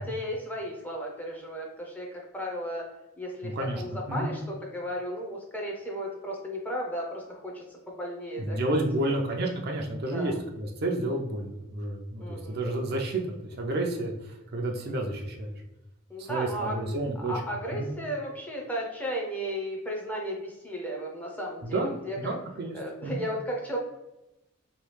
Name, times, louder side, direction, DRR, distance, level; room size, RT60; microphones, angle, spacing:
voice 1, 0.0-2.9 3.2-8.7 9.1-9.2 10.1-10.4 12.2-12.6 16.1-16.8 17.2-22.3 22.7-23.8, equal, 10° left, -2 dB, 0.6 m, -35 dB
voice 2, 3.4-3.8 4.1-4.3 8.4-15.5 16.2-17.3 17.8-17.9 21.6-22.7 23.0-23.2, right 1 dB, 50° right, 1 dB, 0.5 m, -30 dB
3.0 x 2.3 x 3.2 m, 0.95 s
head